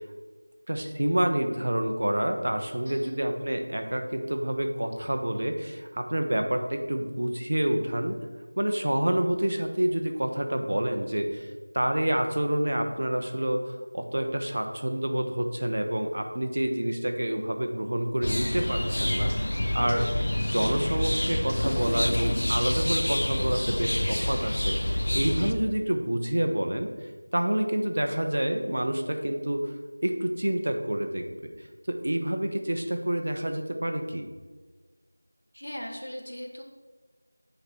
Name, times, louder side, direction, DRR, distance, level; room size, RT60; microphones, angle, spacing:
voice 1, 0.7-8.2 8.6-11.5 11.7-13.6 13.9-19.3 19.7-20.1 20.4-26.9 27.3-29.7 30.0-31.3 31.9-34.3, right 1 dB, 40° right, 5 dB, 0.5 m, -28 dB
voice 2, 2.9-3.2 19.3-19.7 35.5-36.6, equal, 85° left, 1 dB, 0.9 m, -39 dB
sound 1, 18.2-25.5, left 1 dB, 55° left, 0.4 m, -27 dB
7.9 x 3.1 x 4.2 m, 1.3 s
figure-of-eight pair, 180°, 0 cm